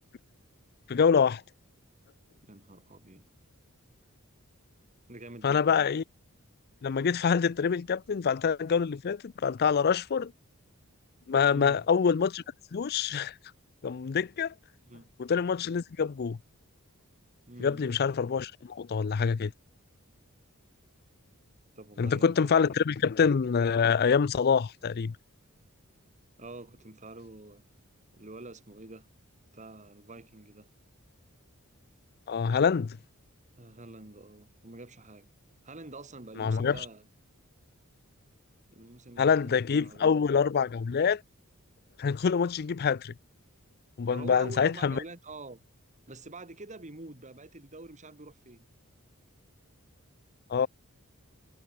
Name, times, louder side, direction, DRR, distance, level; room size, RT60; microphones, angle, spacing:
voice 1, 0.9-1.4 5.4-6.0 6.8-10.3 11.3-12.4 12.7-13.3 13.8-14.5 15.2-16.4 17.6-19.5 22.0-25.2 32.3-33.0 36.4-36.8 39.2-41.2 42.0-43.1 44.0-45.0 50.5-50.7, left 6 dB, 45° left, 0.4 m, -26 dB
voice 2, 2.4-3.3 5.1-5.9 11.5-11.8 14.8-15.1 17.5-17.8 21.8-22.8 26.4-27.6 28.1-29.1 29.5-30.7 33.6-35.3 35.6-37.1 38.7-40.1 44.1-45.7 46.1-48.7, right 2 dB, 35° right, 2.3 m, -47 dB
head